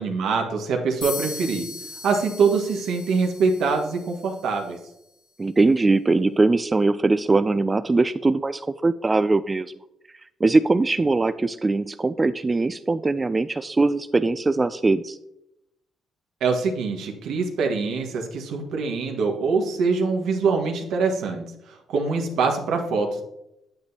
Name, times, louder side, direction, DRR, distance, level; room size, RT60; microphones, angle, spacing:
voice 1, 0.0-1.7 2.0-4.8 16.4-23.2, right 4 dB, 80° right, 2 dB, 1.5 m, -24 dB
sound 1, 1.0-4.8, left 3 dB, 80° left, 2.5 m, -38 dB
voice 2, 5.4-9.7 10.4-15.2, right 3 dB, 25° right, 12 dB, 0.3 m, -21 dB
8.8 x 8.0 x 2.8 m, 0.84 s
cardioid pair, 90°, 0 cm